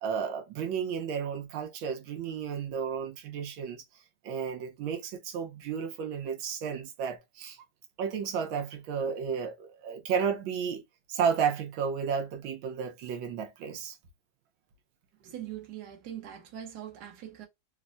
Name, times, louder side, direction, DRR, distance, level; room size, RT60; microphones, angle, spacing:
voice 1, 0.0-3.8 4.2-7.6 8.0-10.8 11.1-14.0, right 7 dB, 85° right, 1.5 m, -32 dB
voice 2, 15.1-17.5, right 11 dB, 60° right, 1.3 m, -42 dB
4.1 x 2.1 x 2.4 m
omnidirectional pair, 2.1 m